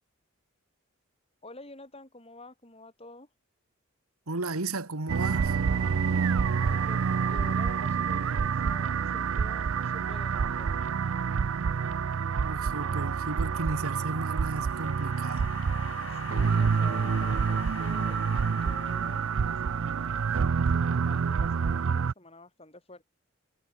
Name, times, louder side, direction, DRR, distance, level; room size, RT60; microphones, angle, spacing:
voice 1, 1.4-3.3 6.1-11.0 16.1-18.2 18.5-20.4 20.7-23.0, left 2 dB, 25° left, 7.5 m, -49 dB
voice 2, 4.3-5.6 12.4-15.5, right 2 dB, 90° right, 2.0 m, -34 dB
sound 1, 5.1-22.1, right 6 dB, 70° right, 0.5 m, -27 dB
sound 2, 13.8-20.2, left 5 dB, 60° left, 5.8 m, -45 dB
head